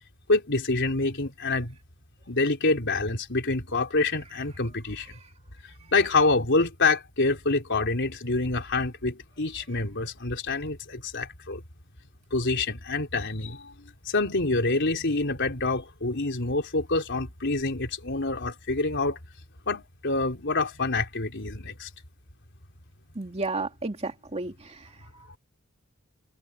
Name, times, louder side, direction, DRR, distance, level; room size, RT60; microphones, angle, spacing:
voice 1, 0.3-1.8 2.3-5.1 5.9-11.6 12.3-13.7 14.1-19.2 19.7-21.9 25.1-25.3, left 3 dB, 55° left, 4.0 m, -26 dB
voice 2, 23.1-25.0, right 3 dB, 30° right, 2.3 m, -32 dB
head